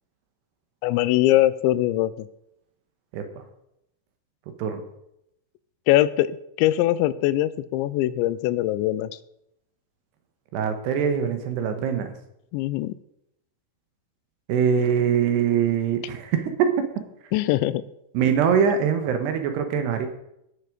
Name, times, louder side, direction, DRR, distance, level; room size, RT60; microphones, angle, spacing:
voice 1, 0.8-2.3 5.9-9.2 12.5-12.9 17.3-17.8, left 15 dB, 85° left, 16 dB, 2.8 m, -22 dB
voice 2, 10.5-12.1 14.5-16.7 18.1-20.1, right 7 dB, 75° right, 7 dB, 3.1 m, -23 dB
17.0 x 6.6 x 5.0 m, 0.80 s
omnidirectional pair, 5.2 m